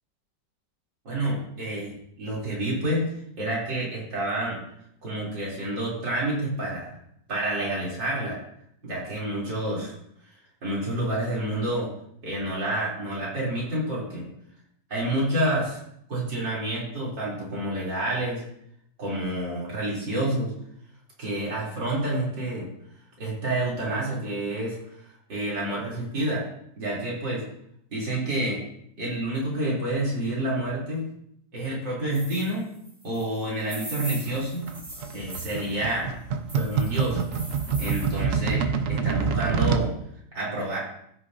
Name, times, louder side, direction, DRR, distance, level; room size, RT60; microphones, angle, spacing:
voice 1, 1.1-3.0 3.4-4.6 5.0-7.0 7.3-8.4 8.8-9.9 10.6-11.9 12.2-14.3 14.9-15.8 16.1-18.4 19.0-20.5 21.2-22.7 23.2-26.4 26.8-27.4 27.9-28.6 29.0-31.0 31.5-32.7 33.0-34.7 35.1-36.1 36.5-37.2 37.8-38.6 38.9-39.9 40.3-40.8, right 1 dB, 90° right, -6 dB, 3.9 m, -28 dB
sound 1, 32.1-35.8 36.5-38.2, right 1 dB, 40° right, 3.2 m, -41 dB
sound 2, 34.3-39.9, right 6 dB, 55° right, 1.0 m, -27 dB
15.0 x 6.5 x 2.7 m, 0.72 s
omnidirectional pair, 1.9 m